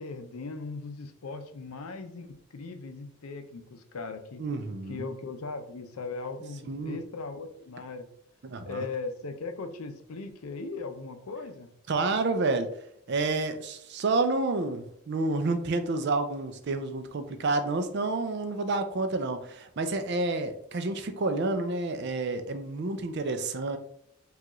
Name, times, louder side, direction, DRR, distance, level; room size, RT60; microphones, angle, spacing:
voice 1, 0.0-4.4 4.9-8.1 8.7-11.7, left 3 dB, 85° left, 7 dB, 0.5 m, -38 dB
voice 2, 4.4-5.1 6.7-7.0 8.4-8.9 11.9-12.7 13.1-23.8, right 3 dB, 50° right, 8 dB, 0.4 m, -29 dB
4.7 x 2.4 x 3.0 m, 0.70 s
head